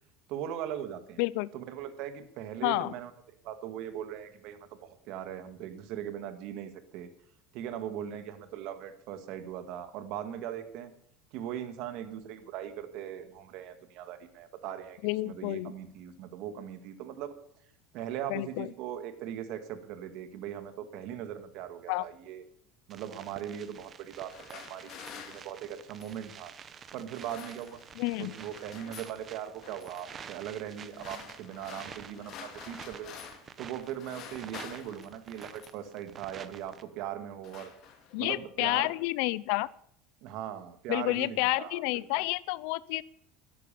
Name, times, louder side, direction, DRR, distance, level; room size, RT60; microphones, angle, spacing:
voice 1, 0.3-1.2 1.5-3.1 3.4-7.1 7.5-10.9 11.3-17.4 17.9-22.4 22.9-24.9 25.3-26.5 26.9-27.8 28.2-33.2 33.6-37.7 38.2-38.9 40.2-42.1, right 10 dB, 60° right, 10 dB, 1.9 m, -39 dB
voice 2, 1.2-1.5 2.6-2.9 15.0-15.7 18.3-18.7 21.9-22.1 28.0-28.3 38.1-39.7 40.9-43.0, left 21 dB, 70° left, 20 dB, 0.6 m, -30 dB
sound 1, 22.9-36.8, right 7 dB, 30° right, 0.9 m, -49 dB
sound 2, 24.1-26.3 27.0-28.0 28.3-29.2 29.6-30.0 30.7-33.6 33.8-35.9 36.7-36.9 37.2-38.3, left 8 dB, 45° left, 2.5 m, -49 dB
13.0 x 11.0 x 7.0 m, 0.65 s
cardioid pair, 145°, 0 cm